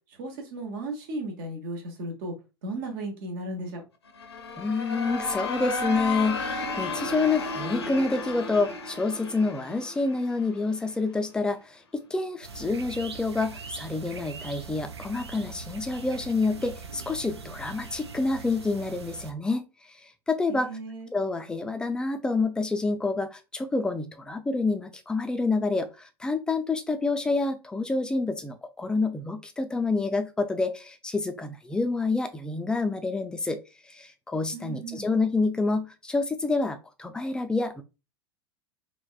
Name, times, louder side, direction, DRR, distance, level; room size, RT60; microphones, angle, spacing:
voice 1, 0.1-2.3 2.6-3.8 20.5-21.1 34.5-35.1, right 2 dB, 50° right, 0.9 m, -35 dB
sound 1, 4.1-10.9, left 3 dB, 75° left, 0.5 m, -33 dB
voice 2, 4.6-19.7 20.3-20.7 21.1-33.6 33.9-37.8, left 3 dB, 5° left, 0.3 m, -28 dB
sound 2, 12.4-19.3, right 5 dB, 80° right, 0.4 m, -41 dB
3.3 x 2.2 x 2.3 m
figure-of-eight pair, 85°, 14 cm